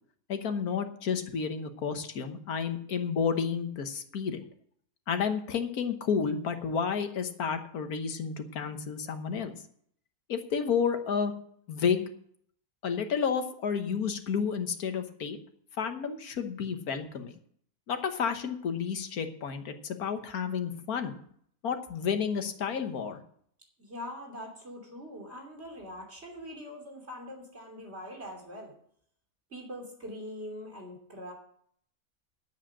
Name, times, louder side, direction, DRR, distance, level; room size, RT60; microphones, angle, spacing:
voice 1, 0.3-4.4 5.1-9.6 10.3-11.3 11.7-12.1 12.8-15.4 15.8-17.3 17.9-21.2 21.6-23.2, left 6 dB, 90° left, 7 dB, 1.7 m, -31 dB
voice 2, 23.8-28.7 29.5-31.3, equal, 45° right, 1 dB, 3.2 m, -43 dB
10.0 x 8.2 x 7.3 m, 0.63 s
omnidirectional pair, 1.5 m